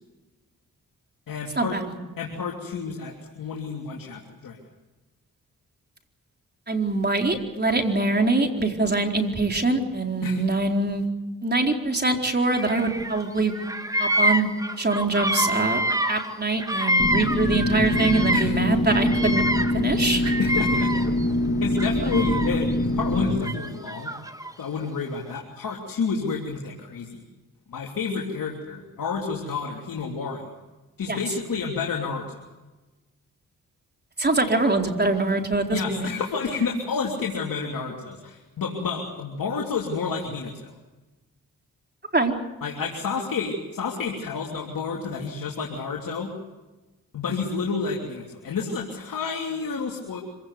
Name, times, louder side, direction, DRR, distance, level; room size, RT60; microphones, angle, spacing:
voice 1, 1.3-1.8 2.2-4.6 10.2-10.4 18.3-18.6 20.4-20.9 21.6-24.1 24.6-27.2 27.7-30.5 31.0-32.4 35.7-40.7 42.6-46.3 47.1-50.2, left 5 dB, 70° left, -1 dB, 3.2 m, -30 dB
voice 2, 6.7-11.1 11.4-13.5 14.0-14.5 14.8-19.5 19.7-20.3 31.1-31.2 34.2-36.1 42.1-42.3, right 2 dB, 30° right, 3 dB, 4.3 m, -24 dB
Bird vocalization bird call bird song, 12.5-13.2 13.5-18.6 18.9-21.3 21.7-22.7 23.4-24.5, equal, 10° right, 2.0 m, -27 dB
sound 1, 17.0-23.4, left 1 dB, 30° left, 3.3 m, -24 dB
26.0 x 17.0 x 8.2 m, 1.1 s
supercardioid pair, 45°, 35 cm